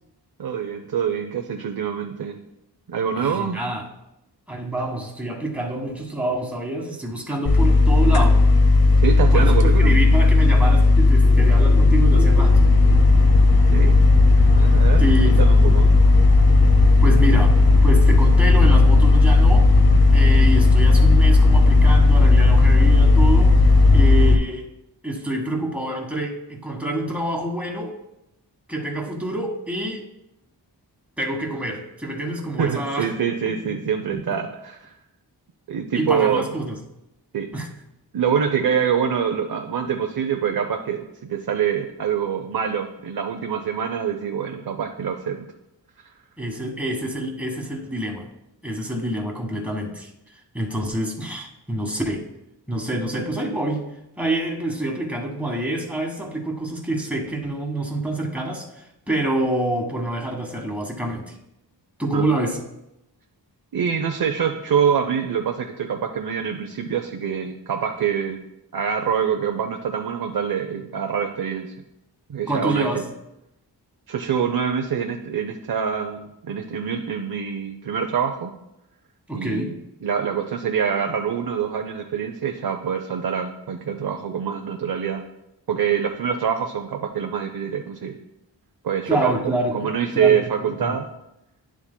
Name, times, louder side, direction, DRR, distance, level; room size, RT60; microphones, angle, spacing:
voice 1, 0.4-2.4 2.9-3.6 9.0-10.0 13.7-14.0 14.5-15.9 32.6-34.9 35.7-36.5 37.3-37.5 38.1-41.0 41.3-45.5 62.1-62.2 63.7-68.4 68.7-71.7 72.3-72.9 74.1-78.5 79.3-79.7 80.0-85.2 85.7-88.2 88.8-89.3 89.7-91.1, right 7 dB, 55° right, 4 dB, 0.6 m, -25 dB
voice 2, 3.1-3.9 4.5-8.4 9.1-12.7 15.0-15.7 17.0-19.7 20.1-23.5 23.9-24.7 25.0-27.9 28.7-30.1 31.2-33.1 34.1-34.2 35.9-36.8 37.5-37.7 46.4-48.3 48.6-50.1 50.5-52.3 52.7-53.8 54.2-61.4 62.0-62.6 72.5-73.0 79.3-79.8 89.1-90.9, right 1 dB, 5° right, 0 dB, 1.5 m, -27 dB
sound 1, 7.4-24.3, left 3 dB, 55° left, 0.9 m, -14 dB
10.5 x 7.2 x 2.2 m, 0.88 s
cardioid pair, 55°, 43 cm